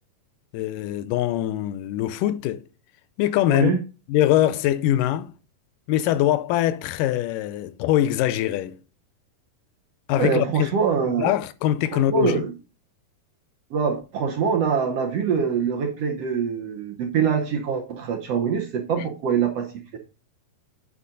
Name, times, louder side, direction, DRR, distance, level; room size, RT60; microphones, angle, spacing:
voice 1, 0.5-2.6 3.2-3.8 4.1-5.3 5.9-8.8 10.1-10.7 11.2-12.4 19.0-19.1, left 13 dB, 85° left, 2.2 m, -23 dB
voice 2, 3.5-3.8 10.1-11.3 11.9-12.5 13.7-20.0, right 6 dB, 65° right, 1.6 m, -24 dB
8.4 x 5.0 x 3.9 m
omnidirectional pair, 3.8 m